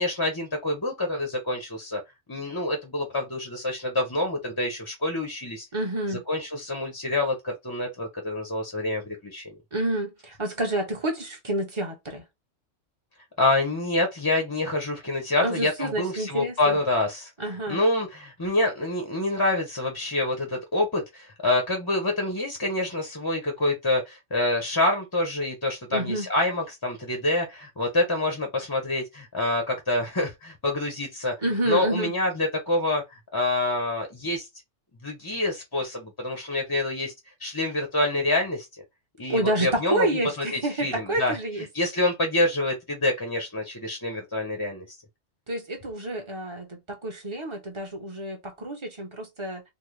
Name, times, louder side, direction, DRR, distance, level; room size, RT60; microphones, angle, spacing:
voice 1, 0.0-2.0 2.3-5.7 6.1-9.5 13.4-31.3 31.6-34.5 35.0-37.1 37.4-38.7 39.2-40.1 40.4-41.4 41.7-45.0, left 2 dB, 25° left, 0.6 m, -27 dB
voice 2, 5.7-6.2 9.7-12.2 15.4-16.8 17.4-17.8 25.9-26.3 31.4-32.1 39.3-41.7 45.5-49.6, right 1 dB, 25° right, 0.8 m, -29 dB
3.7 x 2.1 x 3.2 m
omnidirectional pair, 1.3 m